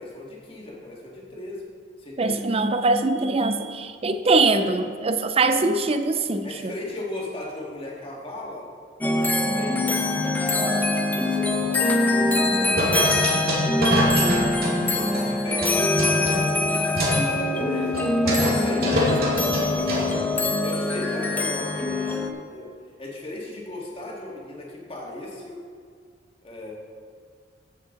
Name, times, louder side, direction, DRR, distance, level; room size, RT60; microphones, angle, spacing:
voice 1, 0.0-1.6 2.0-2.4 4.5-4.7 6.4-8.7 9.1-9.8 10.2-17.0 17.3-20.3 20.6-22.7 23.0-25.6 26.4-26.7, left 2 dB, 30° left, -3 dB, 2.0 m, -36 dB
voice 2, 2.2-6.7, right 3 dB, 30° right, 9 dB, 0.6 m, -22 dB
sound 1, 9.0-22.3, left 2 dB, 10° left, 0.7 m, -23 dB
sound 2, 12.0-12.4 12.7-15.2 15.6-17.2 17.6-17.7 17.9-18.6 18.8-20.1, equal, 55° right, 2.2 m, -25 dB
14.5 x 7.2 x 3.9 m, 2.1 s
head